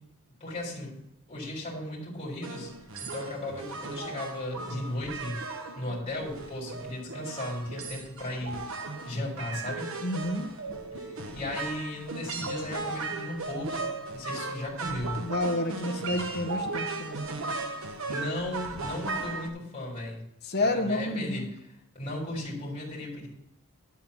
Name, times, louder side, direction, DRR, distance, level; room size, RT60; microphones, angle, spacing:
voice 1, 0.4-1.0 1.3-2.7 3.0-5.4 5.8-8.6 9.1-9.9 11.0-13.9 14.1-15.3 18.0-20.2 20.6-21.4 21.9-23.3, left 1 dB, 25° left, -5 dB, 4.0 m, -36 dB
sound 1, 2.4-19.5, right 3 dB, 70° right, 1.2 m, -36 dB
voice 2, 10.0-10.5 14.8-17.2 20.4-21.5, left 1 dB, 45° left, 6 dB, 1.0 m, -30 dB
11.5 x 4.3 x 7.2 m, 0.82 s
head